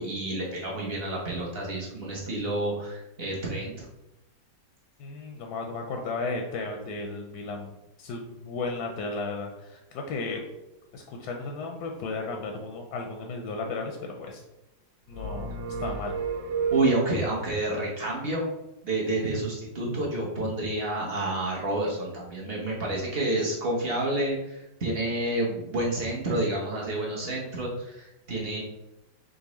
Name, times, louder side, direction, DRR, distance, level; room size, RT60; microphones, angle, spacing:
voice 1, 0.0-3.9 16.7-18.5 18.8-28.6, right 2 dB, 45° right, -4 dB, 0.8 m, -29 dB
voice 2, 5.0-7.7 8.0-10.4 10.9-14.4 15.1-16.2, left 3 dB, 75° left, 3 dB, 1.0 m, -34 dB
sound 1, 15.1-17.5, right 5 dB, 85° right, 1.5 m, -31 dB
4.9 x 2.5 x 3.0 m, 0.94 s
omnidirectional pair, 2.0 m